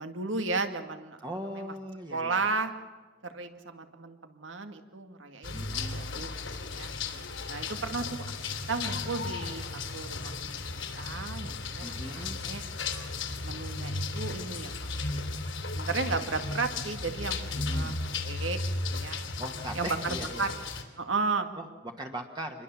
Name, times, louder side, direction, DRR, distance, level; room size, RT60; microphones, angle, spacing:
voice 1, 0.0-1.2 1.6-1.7 2.1-2.7 3.2-6.9 7.5-8.2 8.7-10.7 11.0-12.6 13.4-15.2 15.7-17.4 17.7-18.6 18.9-19.2 19.7-20.5 21.0-21.5, right 4 dB, 85° right, 7 dB, 2.1 m, -34 dB
voice 2, 1.2-2.4 5.5-6.0 11.8-12.4 17.6-17.9 19.4-20.5 21.6-22.6, right 1 dB, 25° right, 2 dB, 1.5 m, -39 dB
sound 1, 5.4-20.8, left 3 dB, 90° left, 3.0 m, -35 dB
26.5 x 22.0 x 7.2 m, 1.3 s
head